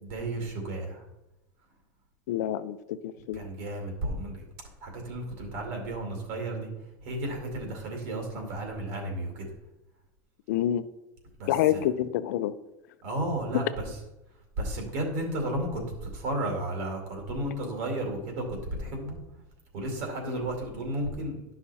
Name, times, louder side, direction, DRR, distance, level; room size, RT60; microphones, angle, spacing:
voice 1, 0.0-1.0 3.3-4.5 4.8-6.7 7.0-9.5 11.4-11.8 13.0-14.0 14.6-19.2 19.7-21.4, right 1 dB, 55° right, 2 dB, 2.2 m, -33 dB
voice 2, 2.3-3.4 10.5-10.9 11.5-12.5 20.3-20.4, left 12 dB, 75° left, 13 dB, 0.5 m, -27 dB
11.0 x 5.8 x 4.2 m, 0.93 s
supercardioid pair, 175°, 9 cm